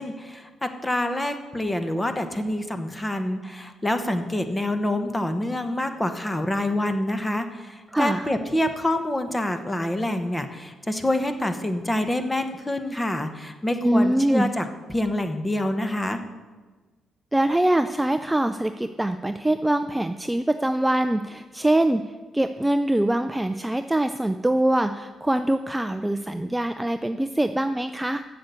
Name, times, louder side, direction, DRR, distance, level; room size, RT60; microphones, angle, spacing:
voice 1, 0.0-16.2, left 1 dB, 15° left, 8 dB, 1.0 m, -27 dB
voice 2, 7.9-8.3 13.8-14.5 17.3-28.3, right 1 dB, 10° right, 9 dB, 0.4 m, -23 dB
8.0 x 7.0 x 8.1 m, 1.3 s
cardioid pair, 90°, 0 cm